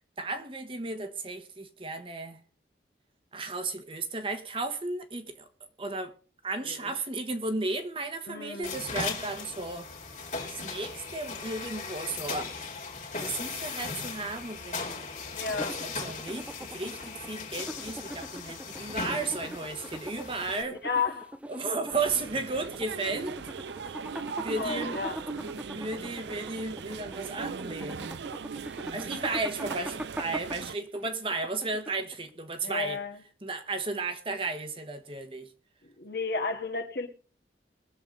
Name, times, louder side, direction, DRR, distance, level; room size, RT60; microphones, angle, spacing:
voice 1, 0.2-2.4 3.3-5.4 5.8-6.1 6.4-9.9 10.4-12.5 13.2-15.0 15.6-20.8 21.5-23.4 24.4-25.0 25.4-28.2 28.9-33.0 33.4-35.5, right 3 dB, 30° right, 1.2 m, -34 dB
voice 2, 8.3-8.8 15.3-15.8 20.8-21.4 24.6-25.2 32.6-33.2 35.8-37.1, left 4 dB, 65° left, 1.9 m, -33 dB
sound 1, 8.6-20.6, left 4 dB, 45° left, 2.6 m, -38 dB
sound 2, 15.4-32.3, right 1 dB, 5° right, 0.5 m, -42 dB
sound 3, 21.9-30.7, right 5 dB, 80° right, 0.5 m, -39 dB
21.5 x 7.3 x 3.8 m
head